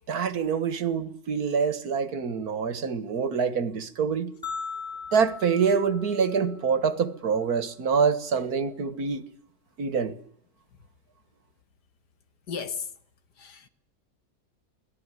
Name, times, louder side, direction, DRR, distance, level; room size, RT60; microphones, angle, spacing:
voice 1, 0.1-4.3 5.1-9.2 9.8-10.2, right 6 dB, 65° right, 1.9 m, -26 dB
sound 1, 4.4-6.8, left 5 dB, 5° left, 3.1 m, -39 dB
voice 2, 12.5-12.8 13.4-13.7, left 6 dB, 80° left, 2.2 m, -34 dB
25.0 x 17.5 x 9.6 m
omnidirectional pair, 1.7 m